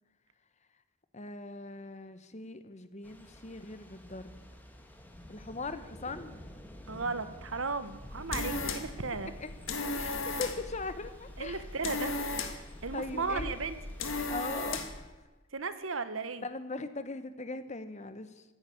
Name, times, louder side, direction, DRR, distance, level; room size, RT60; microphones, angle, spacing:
voice 1, 1.1-4.4 5.3-6.3 9.4-9.5 9.9-11.6 12.9-13.6 14.3-15.1 16.4-18.4, left 3 dB, 35° left, 11 dB, 1.0 m, -40 dB
Thunder / Rain, 3.0-14.1, equal, 10° left, 1.6 m, -51 dB
voice 2, 6.9-9.3 11.4-12.2 12.8-13.8 15.5-16.4, right 4 dB, 80° right, 12 dB, 1.2 m, -35 dB
sound 1, 7.9-15.1, left 3 dB, 70° left, 1.7 m, -37 dB
14.5 x 10.0 x 9.5 m, 1.1 s
head